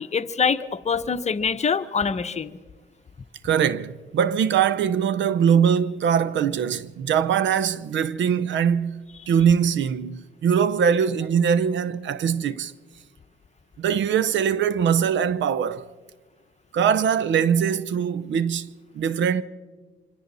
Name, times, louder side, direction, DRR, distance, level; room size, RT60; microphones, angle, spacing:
voice 1, 0.0-2.6, left 6 dB, 35° left, 1.0 m, -25 dB
voice 2, 3.4-12.7 13.8-15.9 16.7-19.4, right 7 dB, 70° right, 0.8 m, -22 dB
25.5 x 24.5 x 4.1 m
cardioid pair, 90°, 20 cm